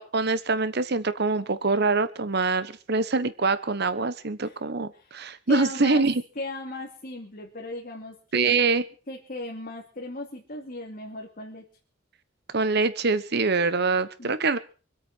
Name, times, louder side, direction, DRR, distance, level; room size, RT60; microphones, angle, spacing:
voice 1, 0.0-6.2 8.3-8.8 12.5-14.6, right 3 dB, 55° right, 14 dB, 1.1 m, -24 dB
voice 2, 5.5-6.1 6.3-8.5 9.1-11.6 14.2-14.3, left 2 dB, 45° left, 1 dB, 2.8 m, -36 dB
24.5 x 8.7 x 6.2 m, 0.39 s
head